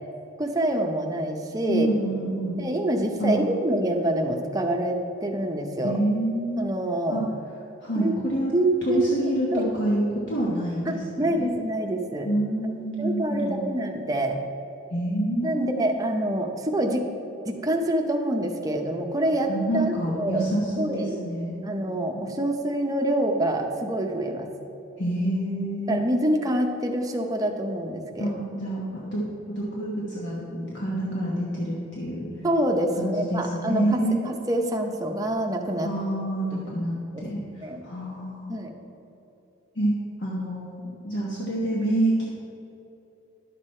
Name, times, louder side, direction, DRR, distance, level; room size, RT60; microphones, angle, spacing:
voice 1, 0.4-1.9 2.6-6.0 6.6-7.2 8.0-8.2 8.5-9.6 10.8-12.3 13.0-14.4 15.4-17.1 17.4-20.5 20.8-21.2 21.6-24.5 25.9-28.3 32.4-35.9 37.1-37.2 37.6-37.8 38.5-38.7, right 1 dB, 20° right, 2 dB, 0.7 m, -26 dB
voice 2, 1.7-2.6 3.2-3.4 5.8-6.8 7.1-7.2 7.8-8.5 8.8-11.0 11.4-11.5 12.2-13.6 14.9-15.9 19.5-21.6 22.1-22.3 25.0-26.0 28.2-32.3 33.0-34.2 35.8-38.5 39.7-39.9 40.2-42.3, right 1 dB, 60° left, -5 dB, 1.2 m, -27 dB
11.0 x 6.6 x 4.3 m, 2.9 s
head